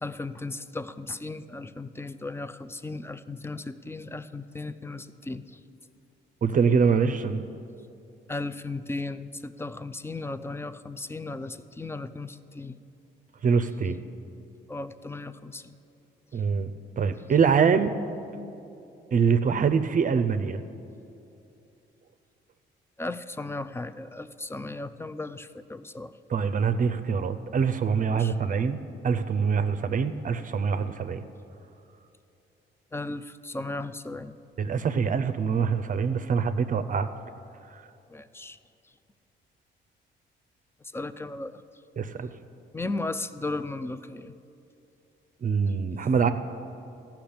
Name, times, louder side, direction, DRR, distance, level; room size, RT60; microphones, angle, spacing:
voice 1, 0.0-5.6 8.3-12.8 14.7-15.8 23.0-26.2 28.2-28.3 32.9-34.4 38.1-38.6 40.9-41.6 42.7-44.3, left 2 dB, 10° left, 13 dB, 0.4 m, -36 dB
voice 2, 6.4-7.5 13.4-14.0 16.3-17.9 19.1-20.6 26.3-28.8 29.0-31.2 34.6-37.1 37.7-37.8 42.0-42.3 45.4-46.3, right 6 dB, 40° right, 11 dB, 0.6 m, -24 dB
13.5 x 5.9 x 8.7 m, 2.7 s
cardioid pair, 90°, 20 cm